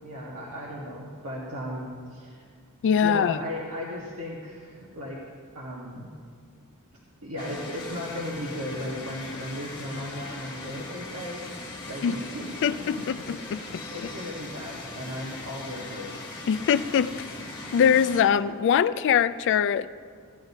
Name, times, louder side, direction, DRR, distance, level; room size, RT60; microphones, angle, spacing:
voice 1, 0.0-2.5 3.0-5.2 5.5-6.1 7.2-12.6 13.0-13.1 13.9-16.1, equal, 85° right, -5 dB, 1.5 m, -36 dB
voice 2, 2.8-3.4 12.0-12.2 12.6-13.8 16.5-17.1 17.7-19.9, left 8 dB, 55° left, 15 dB, 0.3 m, -22 dB
sound 1, 7.4-18.2, left 2 dB, 25° left, 2.1 m, -39 dB
16.5 x 10.5 x 2.8 m, 2.1 s
head